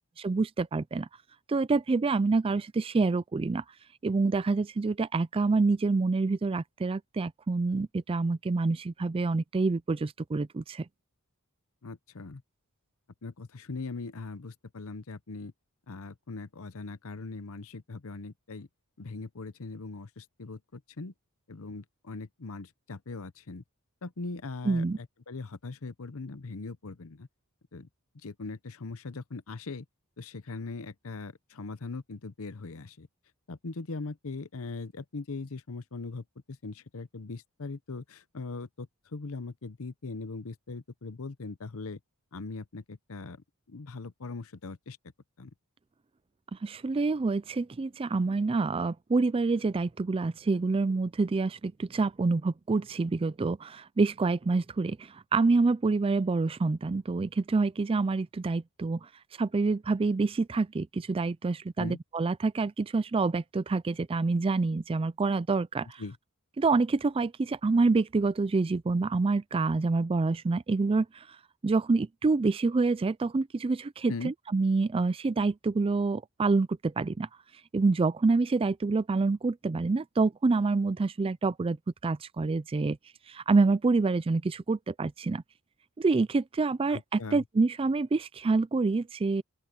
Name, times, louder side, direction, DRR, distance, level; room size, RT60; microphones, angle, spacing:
voice 1, 0.2-1.1 1.5-3.6 4.0-10.8 24.6-25.0 46.6-59.0 59.4-66.0 66.6-71.1 71.6-77.3 77.7-81.8 82.0-83.0 83.3-85.4 86.0-89.4, right 3 dB, 25° right, 0.4 m, -27 dB
voice 2, 11.8-12.4 13.2-15.5 15.9-18.7 19.0-21.1 21.5-23.6 24.0-27.3 27.7-27.9 28.2-29.8 30.2-33.1 33.5-38.9 39.1-42.0 42.3-43.4 43.7-45.0 45.4-45.5 61.8-62.0 66.0-66.2 74.1-74.3 86.9-87.4, left 3 dB, 65° left, 0.8 m, -40 dB
open air
head